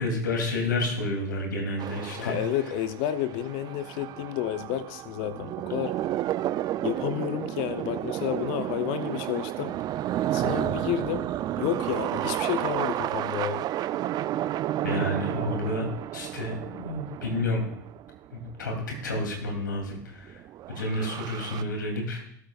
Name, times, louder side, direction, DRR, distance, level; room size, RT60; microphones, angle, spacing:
voice 1, 0.0-2.4 14.8-15.8 16.1-17.6 18.3-20.4 20.7-22.2, left 2 dB, 85° left, 3 dB, 2.8 m, -30 dB
sound 1, 1.8-19.9 20.1-21.6, right 13 dB, 40° right, 0.4 m, -32 dB
voice 2, 2.2-6.0 6.8-9.8 10.3-13.7, left 11 dB, 60° left, 12 dB, 0.6 m, -31 dB
18.0 x 8.4 x 2.4 m, 0.71 s
hypercardioid pair, 80°, 10 cm